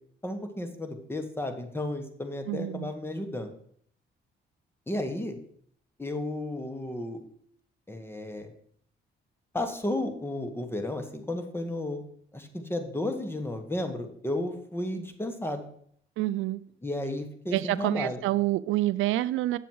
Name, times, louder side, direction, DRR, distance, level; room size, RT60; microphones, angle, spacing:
voice 1, 0.2-3.5 4.9-5.4 6.0-7.2 7.9-8.5 9.5-12.0 12.3-15.6 16.8-18.2, left 1 dB, 10° left, 1.4 m, -33 dB
voice 2, 2.5-2.9 16.2-16.6 17.5-19.6, right 16 dB, 85° right, 0.4 m, -27 dB
9.1 x 7.0 x 4.7 m
cardioid pair, 90°, 20 cm